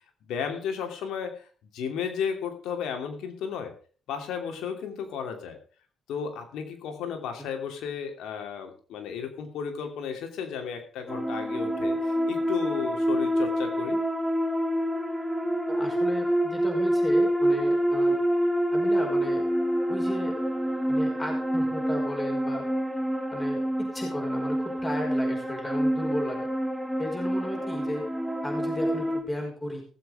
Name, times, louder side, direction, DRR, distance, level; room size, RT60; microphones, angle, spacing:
voice 1, 0.2-1.5 1.7-3.8 4.1-5.6 6.1-14.0, left 7 dB, 85° left, 5 dB, 2.8 m, -34 dB
sound 1, 11.1-29.2, equal, ahead, 2.4 m, -27 dB
voice 2, 15.7-18.2 18.7-19.4 19.9-20.4 20.9-22.6 23.3-26.4 27.0-28.0 28.4-29.8, left 1 dB, 20° left, 1 dB, 5.3 m, -34 dB
17.5 x 7.7 x 5.0 m, 0.40 s
cardioid pair, 90°, 0 cm